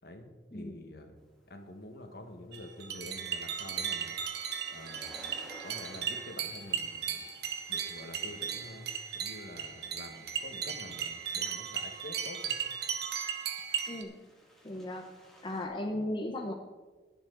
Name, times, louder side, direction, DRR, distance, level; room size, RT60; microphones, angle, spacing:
voice 1, 0.0-1.2 1.5-4.2 4.7-5.2 5.6-7.3 7.7-12.6, left 1 dB, 60° left, 5 dB, 1.5 m, -47 dB
sound 1, 1.4-15.6, equal, 5° left, 2.3 m, -57 dB
sound 2, 2.5-14.0, right 7 dB, 65° right, 1.2 m, -36 dB
voice 2, 13.9-14.2 14.6-15.1 15.4-16.5, left 1 dB, 25° left, 3 dB, 0.8 m, -36 dB
21.0 x 7.3 x 3.9 m, 1.3 s
head